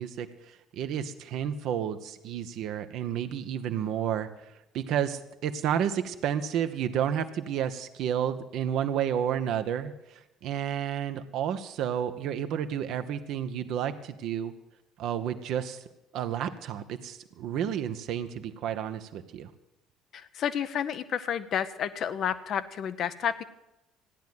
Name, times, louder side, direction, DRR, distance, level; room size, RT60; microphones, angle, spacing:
voice 1, 0.0-4.3 4.7-14.5 15.0-15.8 16.1-19.5, right 9 dB, 55° right, 9 dB, 1.0 m, -31 dB
voice 2, 20.1-23.4, left 8 dB, 50° left, 11 dB, 0.8 m, -30 dB
15.0 x 10.5 x 7.7 m, 0.93 s
figure-of-eight pair, 55°, 0 cm